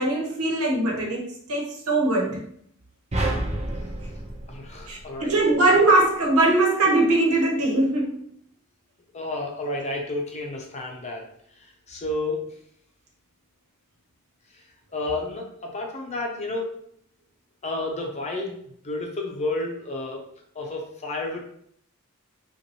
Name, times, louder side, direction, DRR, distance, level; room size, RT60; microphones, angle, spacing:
voice 1, 0.0-2.4 4.9-8.3, right 2 dB, 80° right, -2 dB, 1.3 m, -21 dB
sound 1, 3.1-5.5, right 1 dB, 30° right, 0.6 m, -29 dB
voice 2, 4.5-5.4 9.1-11.3 11.6-12.5 14.5-14.6 14.9-16.7 17.6-18.6 18.8-20.3 20.5-21.4, left 2 dB, 30° left, 0 dB, 0.7 m, -31 dB
5.7 x 2.5 x 3.0 m, 0.68 s
head